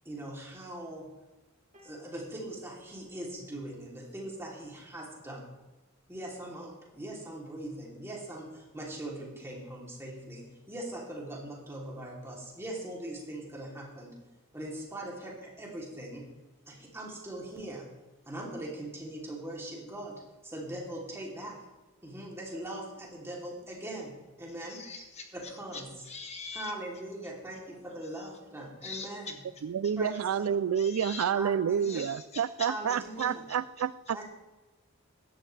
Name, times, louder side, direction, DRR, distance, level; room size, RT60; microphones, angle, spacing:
voice 1, 0.0-1.1 1.8-5.4 6.1-14.1 14.5-16.2 16.7-17.9 18.3-21.6 22.0-24.8 25.3-25.9 26.5-29.4 30.0-30.6 31.3-32.1 32.7-33.4 34.1-34.2, right 1 dB, 10° right, -3 dB, 3.1 m, -41 dB
sound 1, 1.7-4.2 5.2-5.4, right 1 dB, 35° right, 2.3 m, -64 dB
voice 2, 24.7-25.3 25.7-26.7 28.1-28.3 28.8-29.1 30.7-31.2 31.8-32.7, left 5 dB, 30° left, 3 dB, 1.5 m, -42 dB
voice 3, 29.6-34.2, right 8 dB, 80° right, 17 dB, 0.4 m, -29 dB
16.0 x 12.0 x 3.3 m, 1.1 s
head